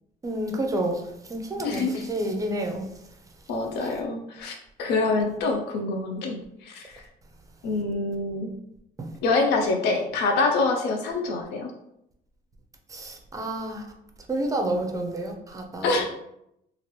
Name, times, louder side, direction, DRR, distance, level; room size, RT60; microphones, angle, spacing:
voice 1, 0.2-2.9 9.0-9.1 12.9-13.9 14.3-16.0, right 1 dB, 20° right, 0.5 m, -29 dB
voice 2, 1.6-2.0 3.5-7.0 7.6-8.5 9.2-11.7 15.8-16.0, left 3 dB, 80° left, 0.5 m, -26 dB
2.9 x 2.4 x 3.1 m
cardioid pair, 110°, 17 cm